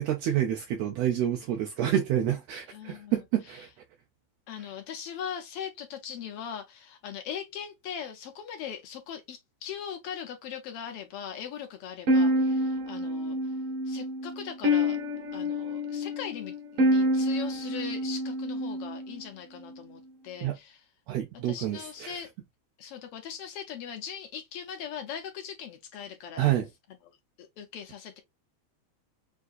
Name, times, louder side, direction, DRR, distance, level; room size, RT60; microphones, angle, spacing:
voice 1, 0.0-3.7 20.4-20.6 21.1-22.2 26.4-26.7, right 11 dB, 75° right, 1.7 m, -28 dB
voice 2, 2.7-3.6 4.5-13.5 13.8-15.0 15.3-20.8 21.4-22.3 22.8-26.5 27.0-28.2, left 8 dB, 75° left, 1.4 m, -40 dB
sound 1, 12.1-19.2, equal, 60° right, 1.7 m, -27 dB
6.4 x 2.7 x 2.4 m
omnidirectional pair, 3.3 m